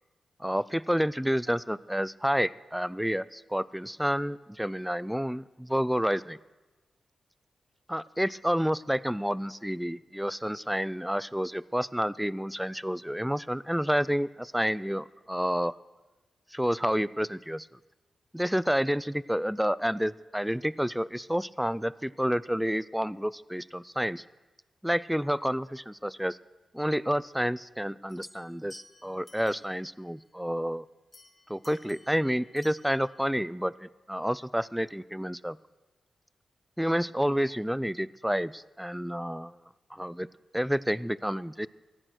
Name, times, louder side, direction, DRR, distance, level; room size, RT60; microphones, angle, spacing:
voice 1, 0.4-6.4 7.9-15.7 16.5-17.7 18.3-24.2 24.8-26.4 26.7-30.8 31.5-35.6 36.8-39.6 39.9-40.3 40.5-41.7, equal, 5° right, 18 dB, 0.3 m, -29 dB
sound 1, 28.1-29.9 31.1-33.2, left 2 dB, 35° left, 1.8 m, -55 dB
15.0 x 9.1 x 6.1 m, 1.2 s
cardioid pair, 70°, 0 cm